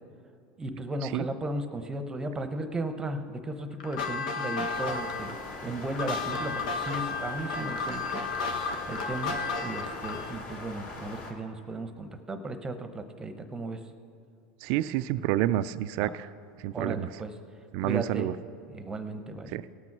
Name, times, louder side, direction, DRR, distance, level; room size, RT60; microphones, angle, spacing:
voice 1, 0.6-5.4 5.6-8.2 8.9-13.8 16.0-16.1 16.7-17.4 17.8-18.3 18.7-19.5, right 2 dB, 15° right, 9 dB, 0.9 m, -35 dB
sound 1, 3.8-10.4, left 4 dB, 90° left, 1.3 m, -33 dB
sound 2, 4.7-11.3, left 2 dB, 45° left, 2.7 m, -42 dB
voice 2, 14.6-16.3 16.6-17.1 17.7-18.3 19.5-19.6, right 13 dB, 60° right, 14 dB, 0.3 m, -28 dB
18.0 x 6.1 x 6.0 m, 2.5 s
supercardioid pair, 125°, 4 cm